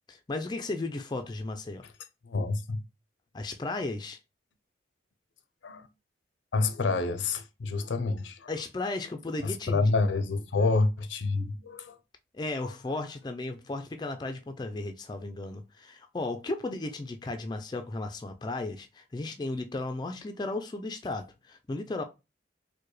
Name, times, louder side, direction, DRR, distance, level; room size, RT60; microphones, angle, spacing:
voice 1, 0.1-1.8 3.3-4.2 8.5-9.9 12.3-22.0, left 2 dB, 20° left, 0.3 m, -35 dB
voice 2, 2.2-2.8 5.6-5.9 6.5-8.5 9.4-12.0, left 3 dB, 85° left, 0.5 m, -28 dB
4.5 x 2.1 x 3.1 m
head